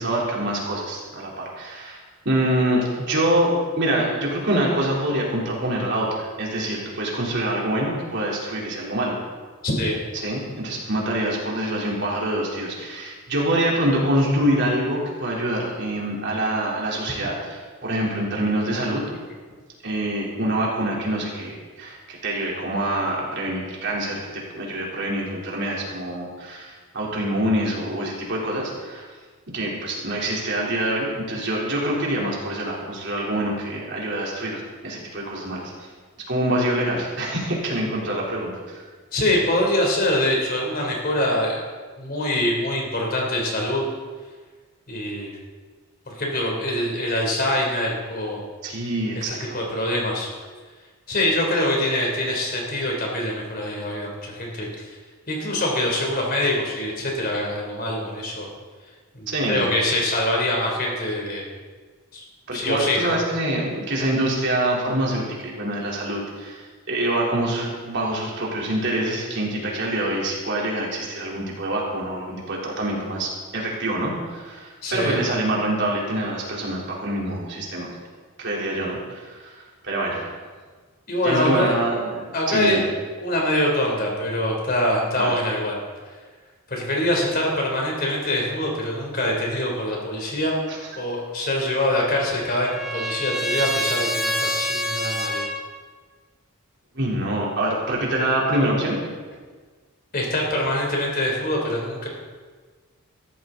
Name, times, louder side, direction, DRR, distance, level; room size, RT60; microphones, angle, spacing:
voice 1, 0.0-2.0 2.3-9.2 10.1-19.0 19.8-21.5 21.8-29.1 29.5-35.7 36.3-38.8 48.6-49.6 59.3-59.7 62.5-77.9 78.4-80.2 81.2-82.8 85.2-85.3 90.7-90.8 96.9-99.0, right 1 dB, 55° right, -3 dB, 3.7 m, -25 dB
voice 2, 9.6-10.0 39.1-41.6 42.0-43.9 44.9-45.4 46.1-48.4 49.5-50.3 51.1-54.9 55.3-58.5 59.1-61.5 62.1-62.2 62.5-63.1 74.8-75.2 81.1-81.7 82.3-82.8 83.2-85.8 86.7-90.6 90.9-95.4 100.1-102.1, left 1 dB, 45° left, -1 dB, 3.6 m, -24 dB
Trumpet, 91.8-95.6, left 1 dB, ahead, 1.6 m, -27 dB
16.5 x 14.0 x 4.0 m, 1.5 s
head